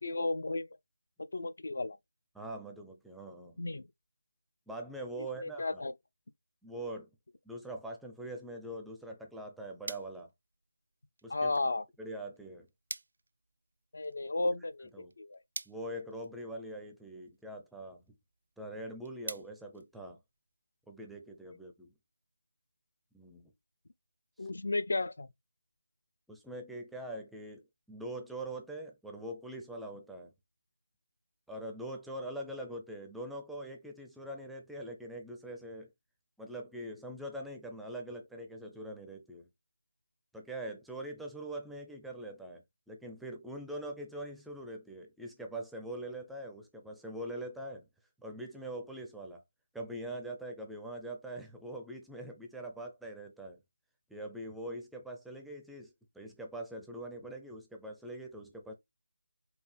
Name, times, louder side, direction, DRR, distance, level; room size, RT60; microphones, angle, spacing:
voice 1, 0.0-0.7 1.3-2.0 3.6-3.9 5.4-5.9 11.3-11.8 13.9-15.4 24.4-25.3, left 2 dB, 60° left, 0.5 m, -33 dB
voice 2, 2.3-3.6 4.7-5.8 6.6-7.1 7.4-10.3 11.2-11.5 12.0-12.7 14.9-15.1 15.7-18.0 18.6-20.2 20.9-21.9 23.1-23.5 24.4-24.5 26.3-27.6 27.9-30.3 31.5-35.9 36.4-39.5 40.3-47.9 48.2-49.4 49.7-53.6 54.1-58.7, right 1 dB, ahead, 0.5 m, -43 dB
sound 1, 9.3-20.6, right 3 dB, 60° right, 0.5 m, -50 dB
4.5 x 2.7 x 3.3 m
figure-of-eight pair, 170°, 0 cm